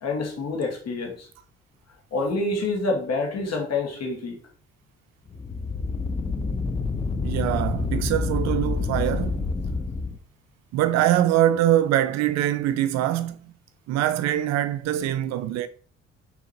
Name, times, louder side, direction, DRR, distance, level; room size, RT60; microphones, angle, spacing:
voice 1, 0.0-1.3 2.1-4.4, left 3 dB, 45° left, 1.5 m, -27 dB
sound 1, 5.3-10.2, left 4 dB, 15° left, 0.5 m, -27 dB
voice 2, 7.2-9.4 10.7-13.4 13.9-15.7, right 12 dB, 50° right, 0.4 m, -23 dB
6.3 x 2.9 x 2.7 m
figure-of-eight pair, 40°, 34 cm